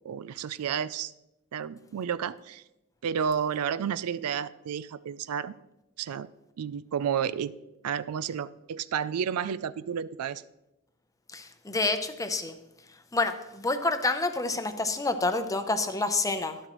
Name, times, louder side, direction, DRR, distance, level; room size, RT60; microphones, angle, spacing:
voice 1, 0.0-1.1 1.5-2.6 3.0-5.5 6.0-6.3 6.6-7.5 7.8-10.4, right 8 dB, 80° right, 17 dB, 0.4 m, -31 dB
voice 2, 11.3-12.5 13.1-16.6, left 3 dB, 15° left, 8 dB, 0.7 m, -28 dB
11.5 x 11.0 x 3.1 m, 0.92 s
head